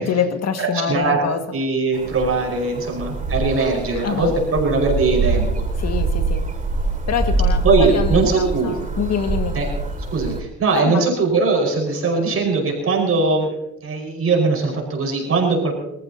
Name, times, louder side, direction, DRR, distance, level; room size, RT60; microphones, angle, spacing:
voice 1, 0.0-1.4 4.0-4.3 5.8-6.4 7.1-9.6 10.7-11.1, left 7 dB, 60° left, 2.0 m, -25 dB
voice 2, 0.6-1.2 1.5-5.5 7.6-8.8 9.5-9.7 10.1-13.5 13.8-15.7, right 3 dB, 50° right, 5.5 m, -20 dB
sound 1, 1.9-10.4, right 3 dB, 25° right, 2.6 m, -24 dB
25.5 x 14.5 x 2.9 m
cardioid pair, 90°, 30 cm